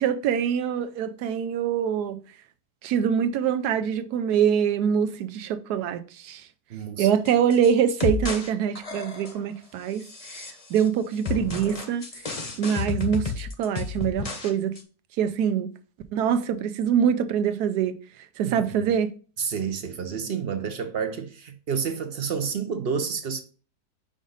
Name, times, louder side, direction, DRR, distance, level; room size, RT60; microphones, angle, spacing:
voice 1, 0.0-2.2 2.8-6.4 7.0-10.0 10.3-12.0 12.6-14.8 15.2-15.7 16.1-17.9 18.4-19.1, right 8 dB, 85° right, 1.2 m, -24 dB
voice 2, 6.7-7.1 18.4-18.9 19.4-23.4, right 6 dB, 55° right, 0.6 m, -30 dB
sound 1, 7.2-8.5 8.7-9.5 10.0-10.9 11.2-14.5 14.7-14.8, left 5 dB, 30° left, 0.7 m, -31 dB
5.1 x 5.1 x 3.9 m
omnidirectional pair, 1.7 m